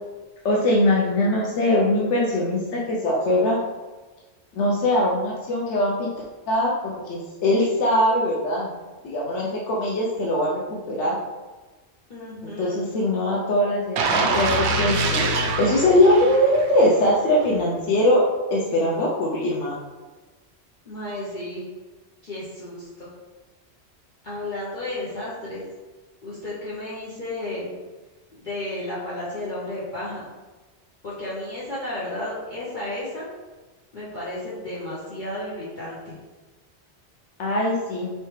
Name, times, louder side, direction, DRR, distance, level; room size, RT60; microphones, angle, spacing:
voice 1, 0.4-3.6 4.6-6.1 6.5-8.7 9.0-10.5 10.9-11.2 12.6-14.5 14.8-15.2 15.6-18.2 18.5-19.7 37.4-38.1, left 1 dB, 80° left, -4 dB, 1.0 m, -21 dB
voice 2, 12.1-12.9 20.9-21.7 22.2-23.1 24.2-25.6 26.2-27.7 28.4-30.3 31.0-33.3 33.9-36.2, left 1 dB, 45° left, -8 dB, 0.9 m, -33 dB
sound 1, 14.0-16.9 17.3-17.5, right 2 dB, 75° right, 0.8 m, -24 dB
4.5 x 3.2 x 3.2 m, 1.3 s
omnidirectional pair, 1.2 m